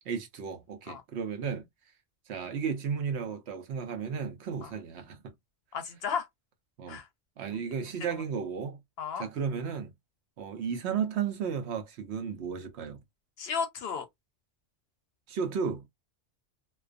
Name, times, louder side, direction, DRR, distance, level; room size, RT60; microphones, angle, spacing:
voice 1, 0.1-1.6 2.3-5.3 6.8-7.0 7.4-8.8 9.2-9.9 10.4-13.0 15.3-15.8, right 6 dB, 65° right, 0.9 m, -34 dB
voice 2, 5.7-6.3 6.9-7.1 9.0-9.3 13.4-14.1, left 6 dB, 65° left, 0.7 m, -33 dB
2.3 x 2.2 x 2.4 m
omnidirectional pair, 1.3 m